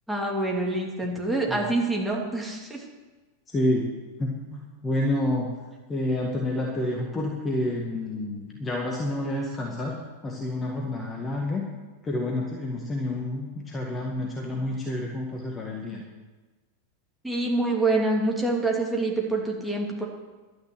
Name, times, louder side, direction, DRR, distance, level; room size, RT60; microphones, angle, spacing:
voice 1, 0.1-2.8 17.2-20.0, right 2 dB, ahead, -2 dB, 2.8 m, -26 dB
voice 2, 3.5-3.9 4.2-5.5 5.9-11.7 12.0-16.0, left 1 dB, 20° left, -1 dB, 1.9 m, -29 dB
12.0 x 9.9 x 7.6 m, 1.3 s
figure-of-eight pair, 90°, 0 cm